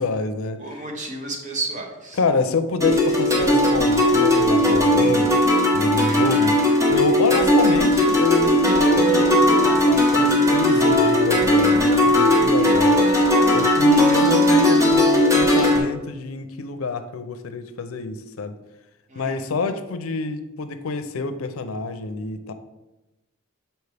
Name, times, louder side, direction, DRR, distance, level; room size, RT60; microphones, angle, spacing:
voice 1, 0.0-0.6 2.1-6.6 6.9-13.0 13.5-18.6 19.1-22.5, left 4 dB, 90° left, 9 dB, 0.5 m, -27 dB
voice 2, 0.6-2.2 14.1-14.3 19.1-19.5, right 2 dB, 40° right, 2 dB, 1.0 m, -32 dB
sound 1, 2.8-15.8, left 1 dB, 15° right, 1.1 m, -17 dB
6.9 x 4.4 x 3.3 m, 1.0 s
head